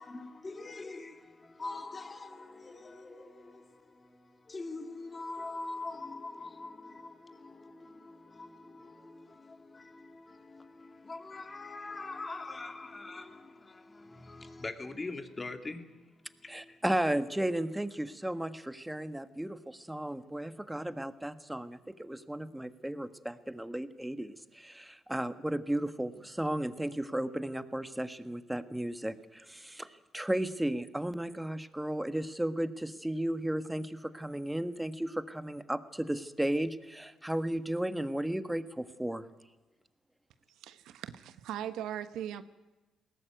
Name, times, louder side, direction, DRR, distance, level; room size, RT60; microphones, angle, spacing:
voice 1, 0.0-16.8, left 3 dB, 25° left, 2.6 m, -44 dB
voice 2, 16.5-39.2, right 1 dB, 5° right, 1.5 m, -34 dB
voice 3, 40.6-42.4, right 11 dB, 85° right, 1.2 m, -39 dB
21.0 x 18.5 x 9.2 m
cardioid pair, 90°, 0 cm